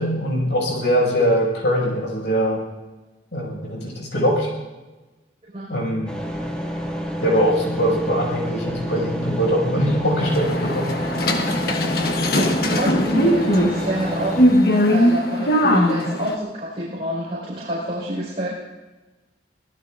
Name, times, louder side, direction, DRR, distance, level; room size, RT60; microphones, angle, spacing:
voice 1, 0.0-2.6 3.3-4.5 5.7-6.1 6.4-6.5 7.2-10.9, equal, 80° left, -4 dB, 6.7 m, -22 dB
sound 1, 6.1-14.5, equal, 5° left, 2.3 m, -29 dB
sound 2, 10.2-16.3, equal, 60° left, 1.4 m, -20 dB
voice 2, 12.6-18.5, right 1 dB, 35° right, -7 dB, 5.3 m, -28 dB
24.5 x 18.0 x 2.6 m, 1.2 s
head